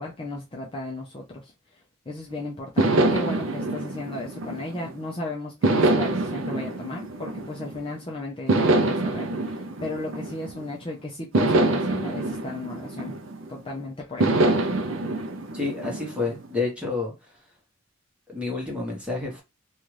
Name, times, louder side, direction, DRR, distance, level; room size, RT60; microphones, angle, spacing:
voice 1, 0.0-13.2 13.5-14.4, left 2 dB, 25° left, 0.5 m, -35 dB
sound 1, 2.8-5.0 5.6-7.9 8.5-10.7 11.3-13.6 14.2-16.5, right 2 dB, 65° right, 0.5 m, -25 dB
voice 2, 15.5-17.1 18.3-19.4, left 3 dB, 5° right, 1.0 m, -29 dB
2.7 x 2.3 x 3.1 m
head